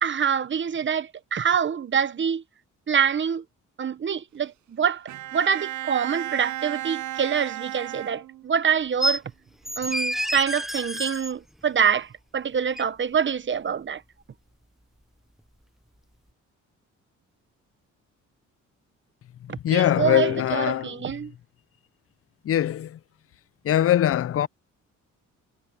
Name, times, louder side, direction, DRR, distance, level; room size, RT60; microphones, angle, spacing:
voice 1, 0.0-2.4 2.9-3.4 3.8-9.2 9.8-14.0 19.5-21.3, right 7 dB, 40° right, 1.1 m, -25 dB
Bowed string instrument, 5.1-8.7, right 14 dB, 75° right, 0.8 m, -34 dB
sound 1, 9.0-9.2 9.6-11.3 12.8-12.9, equal, ahead, 0.6 m, -28 dB
voice 2, 19.4-21.0 22.4-23.0 23.6-24.5, left 11 dB, 50° left, 0.6 m, -22 dB
cardioid pair, 90°, 30 cm